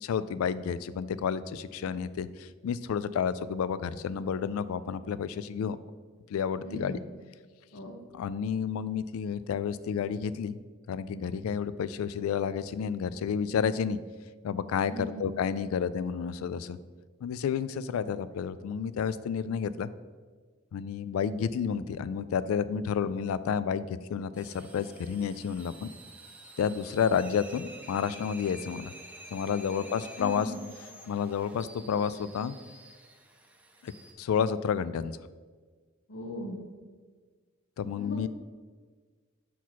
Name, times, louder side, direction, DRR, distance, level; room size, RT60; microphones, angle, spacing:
voice 1, 0.0-5.8 6.3-7.0 8.1-10.6 10.9-14.0 14.4-16.8 17.2-19.9 20.7-25.9 26.6-28.9 29.3-30.5 31.1-32.5 33.8-33.9 34.2-35.2 37.8-38.3, left 7 dB, 80° left, 15 dB, 0.3 m, -30 dB
voice 2, 6.6-7.0 7.7-8.0 14.9-15.3 30.2-30.6 36.1-36.6 38.0-38.3, equal, 60° left, -1 dB, 0.8 m, -38 dB
sound 1, 24.3-34.1, right 1 dB, 5° right, 0.5 m, -49 dB
5.8 x 4.6 x 4.0 m, 1.5 s
head